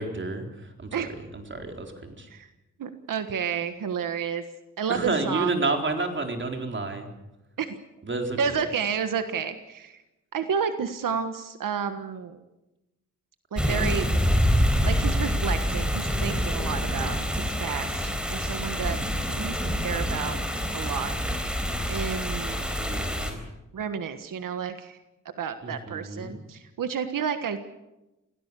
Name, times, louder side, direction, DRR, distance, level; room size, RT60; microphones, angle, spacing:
voice 1, 0.0-2.3 4.9-7.1 8.0-8.4 22.8-23.4 25.6-26.4, right 3 dB, 35° right, 4 dB, 4.0 m, -30 dB
voice 2, 2.8-4.4 4.8-5.6 7.6-7.8 8.4-10.0 10.3-12.4 13.5-14.0 14.8-19.0 19.4-19.6 19.8-20.4 20.7-21.5 21.9-22.7 23.7-25.0 25.4-27.6, right 7 dB, 90° right, 9 dB, 1.5 m, -31 dB
sound 1, 13.5-23.3, equal, 5° right, 4.3 m, -26 dB
27.5 x 17.5 x 8.4 m, 0.98 s
wide cardioid pair, 110°, 32 cm